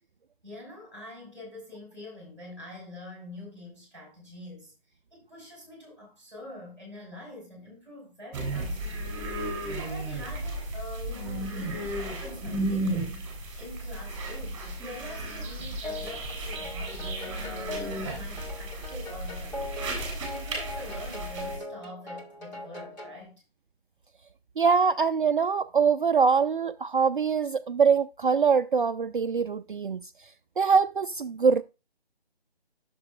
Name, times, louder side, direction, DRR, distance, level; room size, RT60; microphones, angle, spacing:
voice 1, 0.4-13.1 13.6-17.3 17.7-19.8 20.1-23.4, left 1 dB, 10° left, 4.8 m, -45 dB
sound 1, 8.3-21.6, right 1 dB, 10° right, 2.8 m, -34 dB
sound 2, 15.8-23.2, left 2 dB, 45° left, 2.6 m, -41 dB
voice 2, 24.6-30.1 30.6-31.6, right 5 dB, 55° right, 0.4 m, -23 dB
12.5 x 6.9 x 2.3 m
figure-of-eight pair, 155°, 31 cm